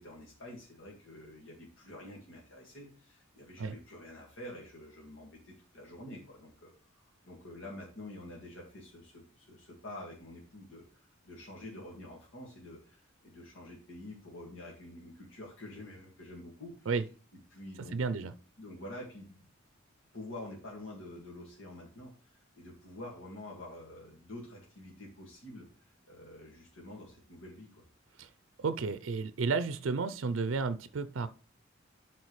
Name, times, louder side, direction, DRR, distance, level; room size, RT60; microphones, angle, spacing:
voice 1, 0.0-17.0 17.5-18.3 18.6-19.4 20.1-27.8, left 1 dB, 90° left, 2.0 m, -48 dB
voice 2, 17.8-18.3 28.2-28.3 28.6-31.3, right 4 dB, 85° right, 0.5 m, -32 dB
12.0 x 4.4 x 3.2 m
head